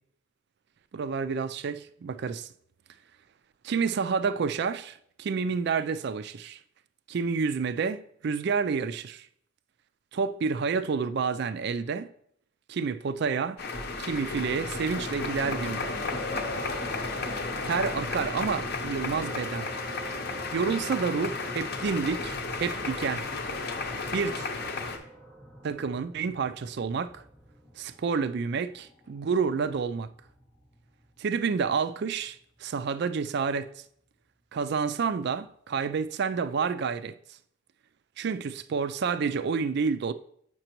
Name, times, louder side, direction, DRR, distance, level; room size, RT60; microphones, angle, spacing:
voice 1, 0.9-2.5 3.6-6.6 7.1-9.3 10.1-12.1 12.7-13.6 14.0-16.0 17.6-19.7 20.5-23.2 24.1-24.5 25.6-27.2 27.8-30.1 31.2-33.7 34.5-37.1 38.2-40.1, right 5 dB, 50° right, 0.3 m, -29 dB
sound 1, 13.6-25.0, left 3 dB, 45° left, 0.7 m, -33 dB
sound 2, 16.0-33.3 34.9-35.0 35.4-35.5, right 1 dB, 5° left, 0.8 m, -48 dB
7.7 x 5.9 x 3.0 m
head